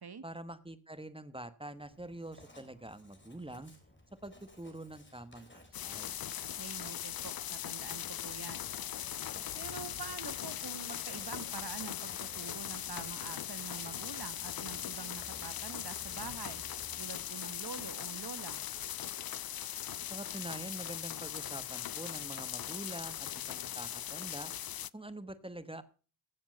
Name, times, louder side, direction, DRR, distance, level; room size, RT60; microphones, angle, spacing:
voice 1, 0.2-3.7 4.2-6.2 20.1-24.5 24.9-25.8, right 1 dB, 10° right, 13 dB, 1.2 m, -45 dB
Writing, 1.8-17.1, left 1 dB, 25° left, 3.7 m, -58 dB
sound 1, 5.7-24.9, left 11 dB, 50° left, 0.5 m, -40 dB
voice 2, 6.4-8.6 9.5-16.6 17.0-18.6, right 6 dB, 50° right, 14 dB, 1.3 m, -46 dB
15.5 x 7.2 x 5.2 m, 0.36 s
cardioid pair, 60°, 48 cm